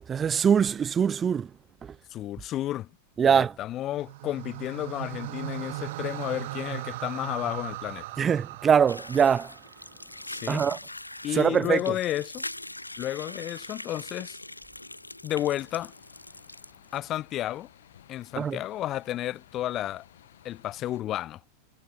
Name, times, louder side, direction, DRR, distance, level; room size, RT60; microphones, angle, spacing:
voice 1, 0.1-1.5 1.8-1.9 3.2-3.5 8.2-9.5 10.5-10.8 11.3-11.8 18.4-18.6, right 7 dB, 20° right, 0.6 m, -23 dB
voice 2, 2.1-2.9 3.2-8.1 10.3-10.7 11.2-12.4 13.0-14.4 15.2-15.9 16.9-17.7 18.1-20.0 20.4-21.4, left 13 dB, 35° left, 1.7 m, -32 dB
sound 1, 3.9-10.2, right 18 dB, 50° right, 2.9 m, -38 dB
sound 2, 8.9-17.0, left 2 dB, 85° left, 0.6 m, -42 dB
sound 3, 15.4-21.0, left 11 dB, 60° left, 6.1 m, -56 dB
figure-of-eight pair, 90°, 0 cm